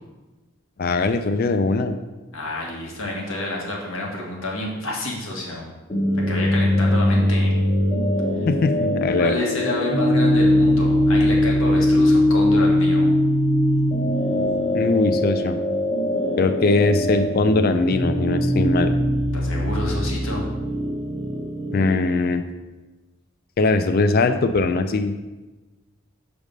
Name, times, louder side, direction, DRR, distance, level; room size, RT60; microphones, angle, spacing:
voice 1, 0.8-2.0 8.5-9.4 14.7-15.6 16.4-18.9 21.7-22.4 23.6-25.2, left 3 dB, 45° left, 10 dB, 0.4 m, -20 dB
voice 2, 2.3-5.6 6.3-7.6 9.1-13.1 19.3-20.5, left 1 dB, 70° left, -1 dB, 1.5 m, -29 dB
sound 1, 5.9-21.9, left 1 dB, 25° left, 0.9 m, -21 dB
7.3 x 3.4 x 5.2 m, 1.1 s
head